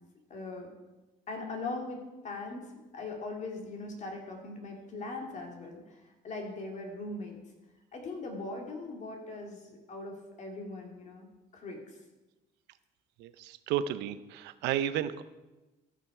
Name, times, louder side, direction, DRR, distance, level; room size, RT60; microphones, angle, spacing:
voice 1, 0.3-0.7 1.3-2.7 2.9-7.4 7.9-11.3 11.5-12.0, left 2 dB, 45° left, 1 dB, 2.3 m, -40 dB
voice 2, 13.2-15.2, right 10 dB, 85° right, 13 dB, 0.6 m, -32 dB
14.0 x 5.9 x 4.8 m, 1.1 s
cardioid pair, 110°, 17 cm